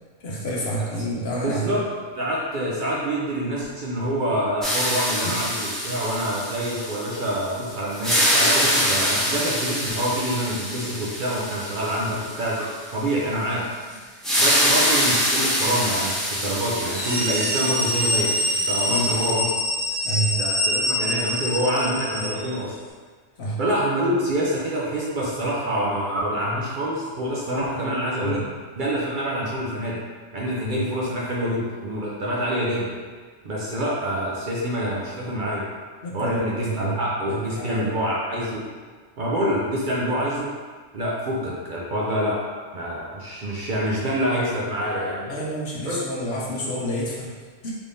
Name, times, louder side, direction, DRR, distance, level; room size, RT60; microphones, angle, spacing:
voice 1, 0.2-1.9 5.2-5.4 18.9-19.1 20.0-20.4 23.4-23.6 28.2-28.4 30.6-30.8 36.0-37.9 45.2-47.3 47.6-47.7, equal, 60° left, -4 dB, 1.0 m, -29 dB
voice 2, 1.4-1.8 2.1-13.6 14.4-19.5 20.4-22.7 23.6-28.4 28.7-30.0 30.3-32.9 33.4-35.6 36.1-38.6 39.2-40.5 40.9-42.4 42.7-45.3 45.8-46.0, equal, 55° right, -5 dB, 0.6 m, -26 dB
sound 1, 4.6-7.5 7.9-12.7 14.2-19.3, equal, ahead, 0.6 m, -25 dB
sound 2, 16.8-22.5, equal, 25° right, 1.3 m, -25 dB
3.4 x 3.4 x 2.6 m, 1.5 s
omnidirectional pair, 1.3 m